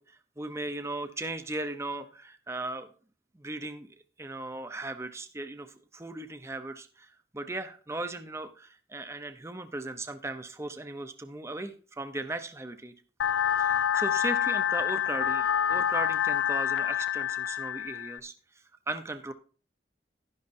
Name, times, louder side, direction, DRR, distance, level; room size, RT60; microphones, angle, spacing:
voice 1, 0.0-2.9 3.3-12.9 13.6-18.3 18.9-19.3, right 2 dB, 15° right, 9 dB, 0.6 m, -37 dB
sound 1, 13.2-18.2, left 9 dB, 85° left, 0.5 m, -27 dB
11.5 x 11.0 x 2.6 m, 0.39 s
head